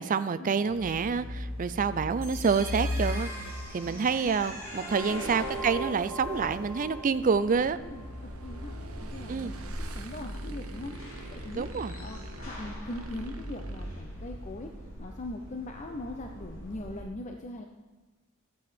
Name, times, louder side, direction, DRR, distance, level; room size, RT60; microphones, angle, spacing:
voice 1, 0.0-3.3 3.7-7.8 9.3-9.5 11.5-11.9, right 5 dB, 40° right, 13 dB, 0.4 m, -27 dB
sound 1, 0.6-17.0, left 1 dB, 70° left, 3.8 m, -40 dB
sound 2, 2.2-8.2, right 1 dB, 15° right, 2.5 m, -40 dB
voice 2, 3.7-4.2 4.8-5.4 7.8-10.9 11.3-11.7 12.0-12.2 12.5-14.7 15.0-17.7, left 2 dB, 35° left, 3 dB, 0.6 m, -41 dB
Motorcycle / Engine, 5.6-14.6, right 3 dB, 85° right, 0.9 m, -49 dB
12.0 x 7.9 x 5.1 m, 1.2 s
head